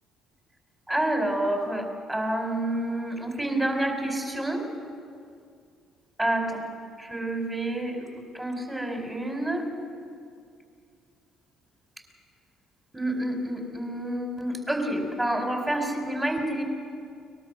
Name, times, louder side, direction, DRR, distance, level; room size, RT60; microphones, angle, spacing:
voice 1, 0.9-4.6 6.2-6.6 7.0-8.1 8.3-9.7 12.9-16.6, right 1 dB, 15° right, 3 dB, 4.6 m, -28 dB
23.0 x 20.5 x 6.4 m, 2.3 s
figure-of-eight pair, 50°, 0 cm